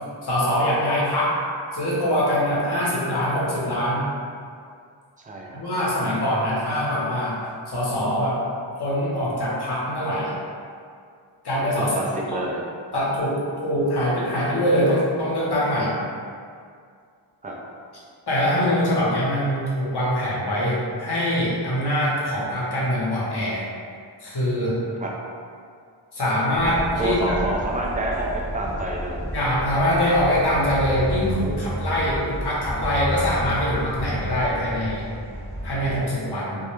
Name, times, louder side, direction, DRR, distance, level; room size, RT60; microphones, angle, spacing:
voice 1, 0.2-1.3 1.7-4.0 5.5-7.4 7.7-8.4 8.8-10.3 11.4-12.0 12.3-12.4 12.9-15.9 18.3-23.6 24.2-24.8 26.1-27.4 29.3-35.0 35.6-36.6, equal, 55° left, -7 dB, 0.8 m, -23 dB
voice 2, 5.2-5.6 11.8-12.6 17.4-17.5 25.0-25.1 27.0-29.3, right 2 dB, 20° right, -2 dB, 0.3 m, -27 dB
sound 1, 26.5-36.0, equal, 15° left, 0.7 m, -31 dB
2.3 x 2.1 x 3.0 m, 2.2 s
wide cardioid pair, 70°, 48 cm